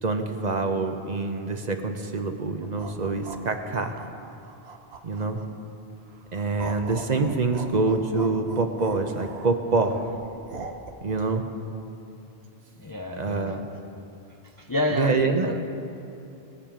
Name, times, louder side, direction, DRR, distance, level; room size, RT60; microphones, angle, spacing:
voice 1, 0.0-3.9 5.0-5.4 6.3-9.9 11.0-11.4 13.2-13.6 14.9-15.5, right 3 dB, 45° right, 6 dB, 0.9 m, -26 dB
sound 1, 2.6-5.6 6.1-10.9, right 4 dB, 85° right, 1.2 m, -41 dB
voice 2, 12.8-13.6 14.6-15.6, left 1 dB, 25° left, 3 dB, 0.5 m, -29 dB
21.0 x 7.2 x 5.1 m, 2.8 s
omnidirectional pair, 1.0 m